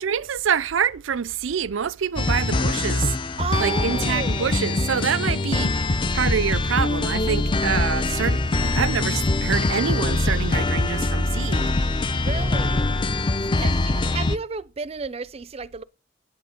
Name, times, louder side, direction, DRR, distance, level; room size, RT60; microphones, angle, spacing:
voice 1, 0.0-3.2 3.6-11.7, right 7 dB, 85° right, 0.5 m, -26 dB
sound 1, 2.2-14.4, left 2 dB, 25° left, 0.5 m, -23 dB
voice 2, 3.4-4.5 12.1-12.9 13.6-15.8, right 5 dB, 30° right, 0.5 m, -32 dB
10.0 x 8.4 x 5.1 m
head